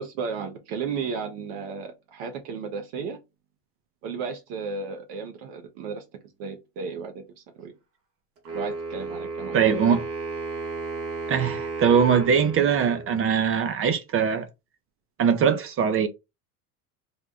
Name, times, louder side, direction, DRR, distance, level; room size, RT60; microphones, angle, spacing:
voice 1, 0.0-3.2 4.0-6.0 6.4-7.7 8.5-9.6, right 5 dB, 65° right, 1.0 m, -34 dB
Wind instrument woodwind instrument, 8.4-13.5, right 3 dB, 85° right, 1.7 m, -34 dB
voice 2, 9.5-10.1 11.3-14.5 15.2-16.1, right 7 dB, 30° right, 0.5 m, -21 dB
3.5 x 2.2 x 3.7 m
supercardioid pair, 110°, 46 cm